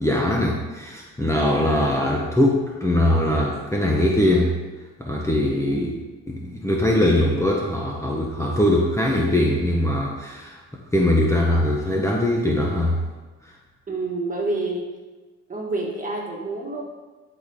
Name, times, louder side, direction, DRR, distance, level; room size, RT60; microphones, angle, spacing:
voice 1, 0.0-4.6 5.0-5.9 6.4-10.6 10.9-13.0, left 1 dB, 10° left, -2 dB, 1.0 m, -21 dB
voice 2, 5.6-6.0 13.9-14.9 15.5-16.8, right 2 dB, 25° right, -2 dB, 1.8 m, -28 dB
11.5 x 4.2 x 3.6 m, 1.2 s
cardioid pair, 90°, 30 cm